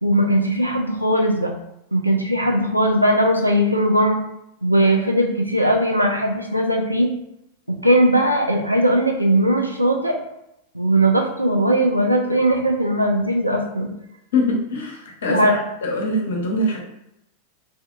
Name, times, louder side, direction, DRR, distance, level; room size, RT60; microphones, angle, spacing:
voice 1, 0.0-1.5 1.9-4.2 4.6-7.1 7.7-10.1 10.7-13.9 15.3-15.6, right 1 dB, 85° right, 2 dB, 0.3 m, -19 dB
voice 2, 14.3-15.6 15.8-16.8, left 1 dB, 65° left, 0 dB, 0.5 m, -23 dB
2.8 x 2.0 x 2.3 m, 0.83 s
figure-of-eight pair, 90°, 0 cm